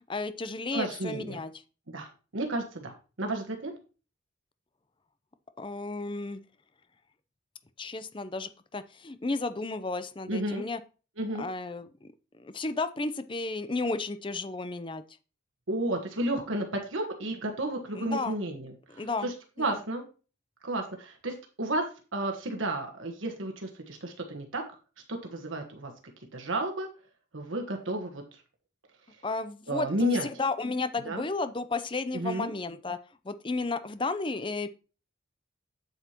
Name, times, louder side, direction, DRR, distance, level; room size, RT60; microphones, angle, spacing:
voice 1, 0.1-1.5 5.6-6.4 7.8-10.8 11.4-12.1 12.4-15.0 17.9-18.4 18.9-19.3 19.7-19.8 29.2-33.0 33.2-34.7, left 3 dB, 25° left, 12 dB, 0.6 m, -33 dB
voice 2, 0.7-1.4 1.9-3.7 10.3-10.6 11.2-11.5 15.7-20.0 20.6-21.8 22.1-24.6 25.1-25.9 26.3-26.9 27.3-28.2 29.7-30.3 31.0-31.2 32.1-32.5, right 1 dB, 85° right, 3 dB, 1.3 m, -32 dB
8.1 x 8.0 x 2.9 m, 0.35 s
head